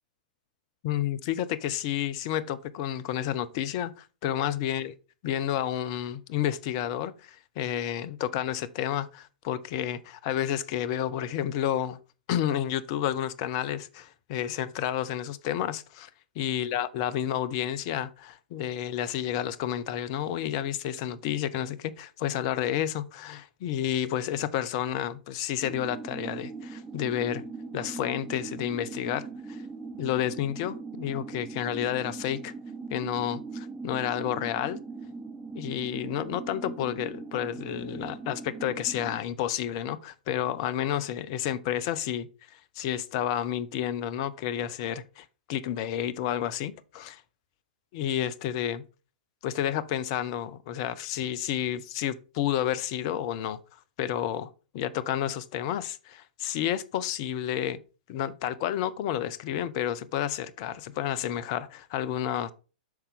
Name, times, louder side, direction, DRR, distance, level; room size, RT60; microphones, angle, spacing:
voice 1, 0.8-4.9 5.2-12.0 12.3-16.1 16.4-27.4 27.7-29.6 30.0-32.5 32.9-34.8 35.5-47.2 47.9-48.8 49.4-53.6 54.0-57.8 58.1-62.5, left 11 dB, 40° left, 0.6 m, -30 dB
sound 1, 25.6-39.2, right 4 dB, 10° right, 0.6 m, -40 dB
7.9 x 5.7 x 3.5 m
figure-of-eight pair, 105°, 5 cm